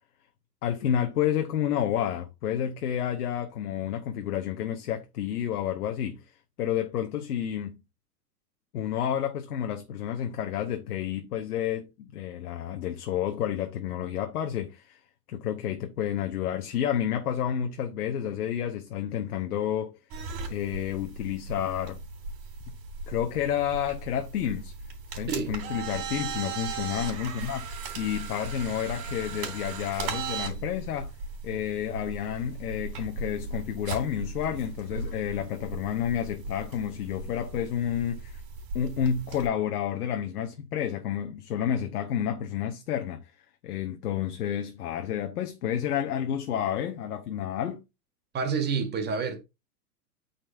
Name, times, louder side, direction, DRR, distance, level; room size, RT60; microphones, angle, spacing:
voice 1, 0.6-6.2 6.6-7.7 8.7-15.0 15.3-20.0 20.5-22.0 23.1-24.7 25.2-27.7 28.0-31.1 31.4-38.4 38.7-43.3 43.6-47.8, left 9 dB, 65° left, 1.0 m, -30 dB
sound 1, 20.1-39.5, right 4 dB, 45° right, 3.4 m, -37 dB
voice 2, 48.3-49.4, right 5 dB, 20° right, 1.2 m, -28 dB
8.8 x 4.3 x 2.6 m
hypercardioid pair, 110°, 48 cm